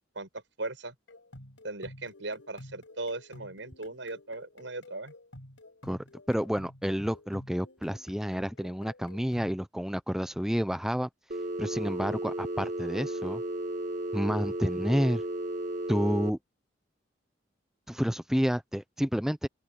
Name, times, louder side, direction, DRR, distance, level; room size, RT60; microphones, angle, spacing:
voice 1, 0.1-0.9 1.6-5.1, right 2 dB, 80° right, 6.8 m, -38 dB
sound 1, 1.1-9.6, left 1 dB, 90° left, 6.0 m, -51 dB
voice 2, 6.3-11.1 11.6-13.4 14.1-15.2 15.9-16.4 17.9-19.5, equal, 5° right, 0.6 m, -29 dB
Telephone, 11.3-16.3, right 1 dB, 45° right, 1.5 m, -34 dB
open air
head